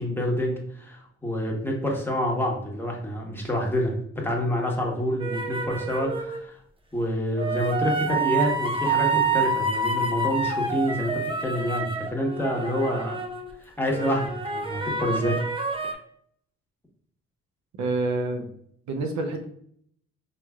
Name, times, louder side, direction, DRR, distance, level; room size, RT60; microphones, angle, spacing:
voice 1, 0.0-6.6 6.9-13.2 13.6-15.5, equal, 5° left, -2 dB, 1.2 m, -27 dB
sound 1, 5.2-6.4 7.4-13.5 13.9-15.9, right 3 dB, 20° right, 0.6 m, -28 dB
voice 2, 17.8-18.5 18.9-19.4, right 2 dB, 70° right, 5 dB, 0.7 m, -27 dB
5.7 x 3.1 x 2.3 m, 0.66 s
cardioid pair, 90°, 30 cm